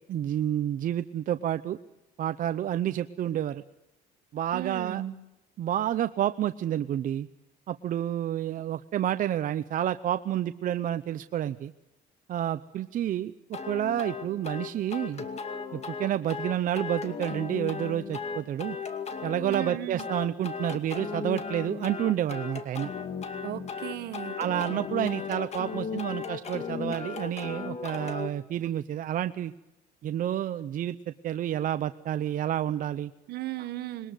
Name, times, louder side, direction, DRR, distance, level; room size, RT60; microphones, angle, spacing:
voice 1, 0.1-1.8 2.2-3.6 4.3-5.0 5.6-7.3 7.7-11.7 12.3-15.2 15.7-18.8 19.2-22.9 24.4-29.5 30.0-33.1, right 11 dB, 55° right, 11 dB, 0.7 m, -29 dB
voice 2, 4.5-5.2 19.5-20.1 23.4-24.4 33.3-34.1, right 14 dB, 70° right, 13 dB, 1.3 m, -36 dB
sound 1, 13.5-28.3, left 5 dB, 40° left, 2.3 m, -36 dB
21.5 x 20.0 x 8.1 m, 0.96 s
cardioid pair, 110°, 17 cm